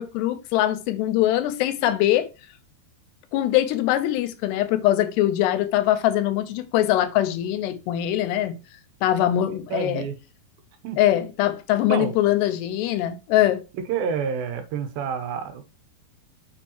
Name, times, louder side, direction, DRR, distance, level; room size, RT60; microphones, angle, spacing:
voice 1, 0.0-2.3 3.3-8.6 9.0-10.1 11.0-13.6, left 13 dB, 85° left, 3.0 m, -22 dB
voice 2, 9.5-10.1 10.8-11.2 11.9-12.1 13.9-15.6, right 6 dB, 70° right, 2.6 m, -29 dB
7.3 x 6.4 x 3.0 m
omnidirectional pair, 4.8 m